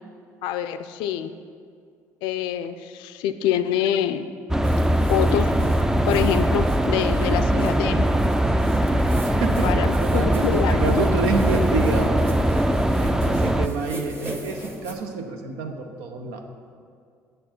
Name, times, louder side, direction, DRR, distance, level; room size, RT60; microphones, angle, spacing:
voice 1, 0.4-1.3 2.2-4.2 5.1-5.5 6.1-8.0 9.6-11.0, left 10 dB, 70° left, 11 dB, 0.4 m, -25 dB
sound 1, 4.5-13.7, right 1 dB, 5° right, 0.4 m, -21 dB
sound 2, 4.6-14.9, right 1 dB, 25° right, 1.4 m, -37 dB
voice 2, 9.2-12.4 12.9-16.4, right 4 dB, 75° right, 5 dB, 0.8 m, -28 dB
8.6 x 6.4 x 4.3 m, 2.2 s
hypercardioid pair, 55°, 8 cm